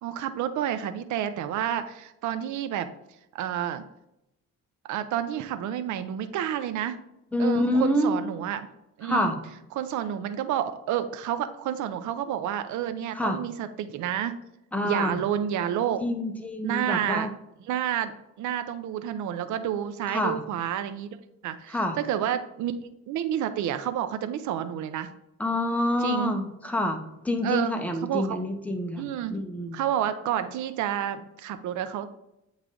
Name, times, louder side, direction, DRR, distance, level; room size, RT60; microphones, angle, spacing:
voice 1, 0.0-2.9 3.3-3.8 4.9-7.0 7.4-8.7 9.0-9.3 9.8-14.3 14.8-16.0 16.6-17.3 17.7-21.2 21.4-25.1 26.0-26.3 27.4-28.4 29.0-29.4 29.7-32.1, right 10 dB, 75° right, 10 dB, 0.6 m, -29 dB
voice 2, 7.3-8.1 9.0-9.4 13.1-13.4 14.7-15.2 16.0-17.3 20.1-20.4 21.7-22.0 25.4-29.8, left 1 dB, 5° left, 4 dB, 0.9 m, -27 dB
8.1 x 3.2 x 3.7 m, 0.85 s
cardioid pair, 90°, 30 cm